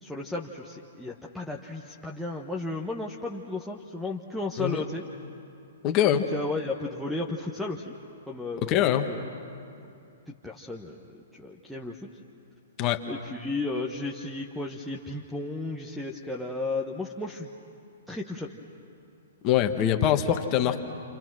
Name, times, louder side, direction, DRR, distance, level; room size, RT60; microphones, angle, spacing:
voice 1, 0.0-5.0 6.1-7.9 8.3-8.8 9.1-9.3 10.3-12.1 13.1-17.5 18.1-18.6, left 2 dB, ahead, -3 dB, 1.2 m, -34 dB
voice 2, 5.8-6.3 8.7-9.1 12.8-13.0 19.4-20.8, left 10 dB, 35° left, 6 dB, 1.6 m, -23 dB
29.0 x 28.0 x 6.3 m, 2.5 s
hypercardioid pair, 120°, 0 cm